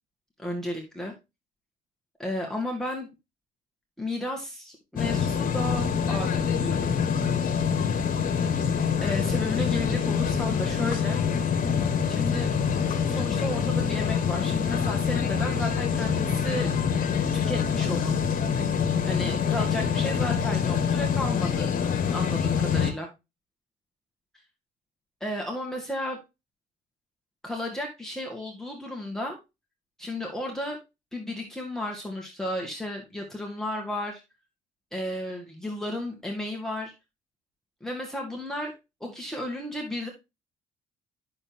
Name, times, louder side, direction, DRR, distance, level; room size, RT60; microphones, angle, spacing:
voice 1, 0.4-1.1 2.2-3.1 4.0-7.0 9.0-11.2 12.1-12.5 13.1-16.7 17.3-18.2 19.0-21.7 22.1-23.1 25.2-26.2 27.4-29.4 30.0-30.8 31.1-34.2 34.9-36.9 37.8-38.7 39.0-40.1, left 1 dB, 5° left, -1 dB, 2.0 m, -33 dB
sound 1, 5.0-22.9, left 7 dB, 55° left, 1.6 m, -25 dB
8.7 x 6.7 x 2.9 m, 0.24 s
supercardioid pair, 70°, 17 cm